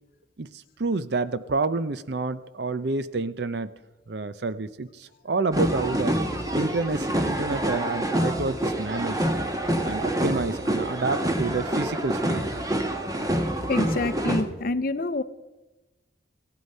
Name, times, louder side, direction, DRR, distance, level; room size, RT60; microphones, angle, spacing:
voice 1, 0.4-3.7 4.1-6.2 6.4-9.2 9.8-12.5, right 3 dB, 60° right, 14 dB, 0.6 m, -29 dB
sound 1, 5.5-14.4, right 1 dB, 20° right, 1.1 m, -27 dB
voice 2, 13.7-15.2, left 2 dB, 50° left, 13 dB, 0.6 m, -27 dB
16.0 x 11.5 x 5.5 m, 1.1 s
head